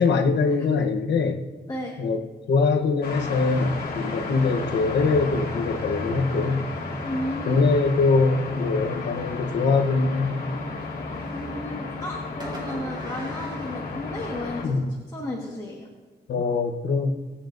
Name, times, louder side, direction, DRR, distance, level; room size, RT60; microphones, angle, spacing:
voice 1, 0.0-1.4 2.0-2.2 2.5-6.7 7.5-10.4 14.6-14.9 16.3-17.1, left 4 dB, 90° left, 5 dB, 1.0 m, -23 dB
sound 1, 3.0-14.6, left 3 dB, 60° left, 2.3 m, -33 dB
voice 2, 7.0-7.6 10.8-10.9 11.3-14.8 15.1-15.9, left 1 dB, 20° left, -2 dB, 1.5 m, -33 dB
Fireworks, 11.1-11.8 12.4-14.6, equal, 25° right, 3.5 m, -42 dB
25.0 x 8.6 x 2.6 m, 1.3 s
wide cardioid pair, 135°, 17 cm